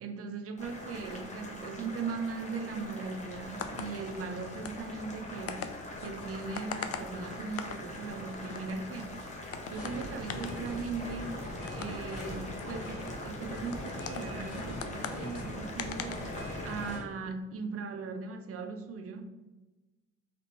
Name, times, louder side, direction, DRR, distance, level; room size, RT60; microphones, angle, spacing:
voice 1, 0.0-5.7 6.0-9.2 9.7-11.4 11.7-19.3, right 4 dB, 50° right, 7 dB, 0.5 m, -39 dB
Boiling, 0.6-17.0, left 1 dB, 25° left, 0.8 m, -43 dB
sound 1, 3.3-16.9, left 7 dB, 50° left, 0.4 m, -44 dB
sound 2, 9.7-17.0, left 1 dB, 85° left, 1.2 m, -41 dB
3.3 x 2.7 x 2.9 m, 1.1 s
cardioid pair, 90°, 30 cm